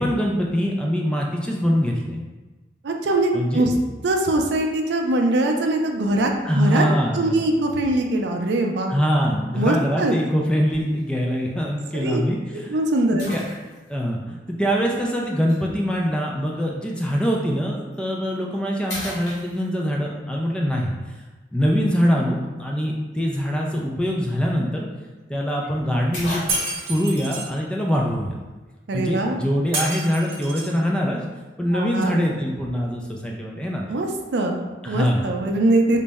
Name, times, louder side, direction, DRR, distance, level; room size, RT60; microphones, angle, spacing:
voice 1, 0.0-2.2 3.3-3.6 6.4-7.3 8.9-12.8 13.1-13.4 13.9-20.9 21.5-24.9 25.3-26.4 26.9-28.3 28.9-31.2 31.6-33.9 34.8-35.3, equal, 5° left, -1 dB, 0.3 m, -23 dB
voice 2, 2.8-3.7 4.0-6.8 7.1-8.9 9.6-10.1 11.9-12.2 12.7-13.3 28.9-29.4 31.7-32.2 33.9-36.0, right 2 dB, 75° right, 3 dB, 0.4 m, -22 dB
sound 1, 10.7-11.0 11.7-11.8 13.2-14.0 15.5-15.6 17.8-18.0 18.4-18.6 18.9-20.0 24.1-24.2 24.5-24.6 25.6-25.7 26.1-27.0, left 1 dB, 70° left, 1.2 m, -35 dB
Shatter, 26.5-27.5 29.7-30.8, right 2 dB, 35° right, 1.0 m, -28 dB
3.9 x 2.1 x 3.4 m, 1.2 s
head